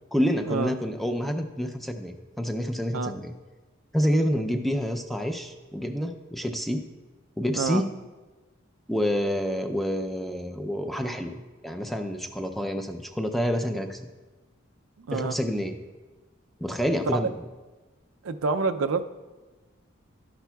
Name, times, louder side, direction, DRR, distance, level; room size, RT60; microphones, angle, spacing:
voice 1, 0.1-3.3 3.9-6.8 7.4-7.9 8.9-11.4 11.6-14.0 15.1-15.8 16.6-17.3, equal, ahead, 6 dB, 0.4 m, -28 dB
voice 2, 15.0-15.3 17.1-17.2 18.2-19.0, right 4 dB, 90° right, 9 dB, 0.5 m, -27 dB
12.0 x 10.0 x 2.3 m, 1.2 s
head